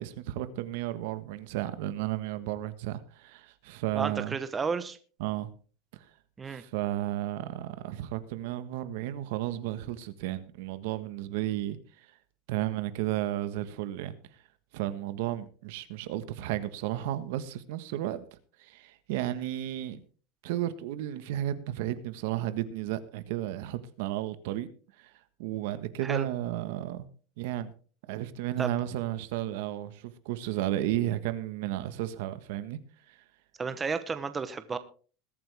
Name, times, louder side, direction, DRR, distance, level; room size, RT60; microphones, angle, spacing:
voice 1, 0.0-4.4 5.2-5.5 5.9-6.0 6.5-12.1 12.5-14.1 14.7-18.2 18.6-20.0 20.4-24.7 25.0-25.1 25.4-27.1 27.4-27.7 28.1-32.8 33.1-33.2, right 13 dB, 70° right, 1.4 m, -33 dB
voice 2, 3.9-5.0 6.4-6.6 26.0-26.3 28.6-28.7 33.6-34.8, right 5 dB, 15° right, 1.0 m, -32 dB
21.0 x 8.8 x 3.5 m
supercardioid pair, 145°, 0 cm